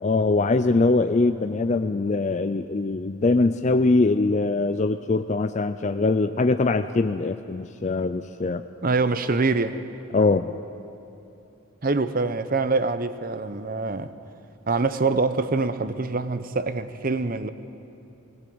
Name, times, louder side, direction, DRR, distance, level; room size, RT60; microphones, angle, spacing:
voice 1, 0.0-8.6 10.1-10.6, left 3 dB, 35° left, 0.4 m, -22 dB
voice 2, 8.8-9.8 11.8-14.1 14.7-17.5, right 3 dB, 40° right, 0.7 m, -25 dB
20.5 x 18.0 x 7.9 m
head